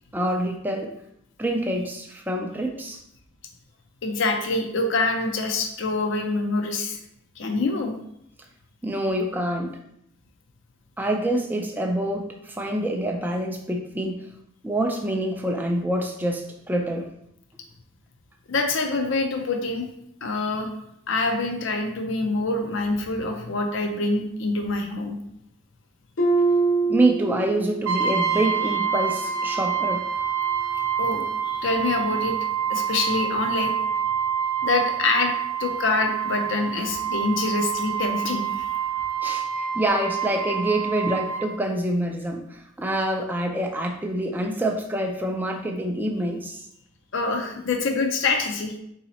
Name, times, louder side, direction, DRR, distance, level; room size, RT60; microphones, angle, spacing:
voice 1, 0.1-0.9 1.4-3.0 8.8-9.8 11.0-14.3 14.6-17.1 26.9-30.1 39.2-46.6, right 1 dB, 10° right, 2 dB, 0.3 m, -26 dB
voice 2, 4.0-7.0 7.4-7.9 18.5-19.9 20.2-20.7 21.1-25.2 28.3-28.4 31.0-32.4 32.7-33.7 34.6-35.3 35.6-38.7 47.1-48.8, left 3 dB, 60° left, 4 dB, 0.5 m, -25 dB
Harp, 26.2-27.9 28.3-28.7 29.3-29.4, right 3 dB, 75° left, 0.9 m, -24 dB
Brass instrument, 27.9-41.5, right 7 dB, 70° right, 0.6 m, -27 dB
4.0 x 2.8 x 4.1 m, 0.74 s
head